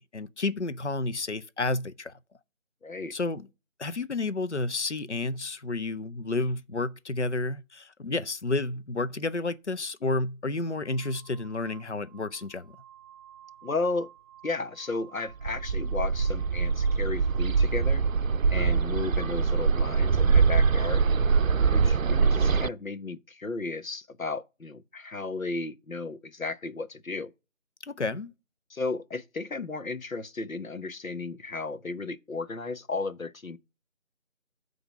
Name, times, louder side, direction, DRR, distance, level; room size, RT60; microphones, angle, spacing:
voice 1, 0.1-2.1 3.1-3.5 3.8-12.7 27.8-28.3, left 3 dB, 60° left, 0.7 m, -31 dB
voice 2, 2.8-3.1 13.6-14.1 14.4-18.0 18.5-21.0 21.7-27.3 28.7-33.6, left 3 dB, 90° left, 1.1 m, -34 dB
sound 1, 9.6-9.8 10.6-18.3, right 10 dB, 25° left, 2.2 m, -54 dB
Bird, 15.4-22.7, right 5 dB, 80° right, 0.6 m, -23 dB
7.9 x 4.0 x 6.5 m
figure-of-eight pair, 180°, 40 cm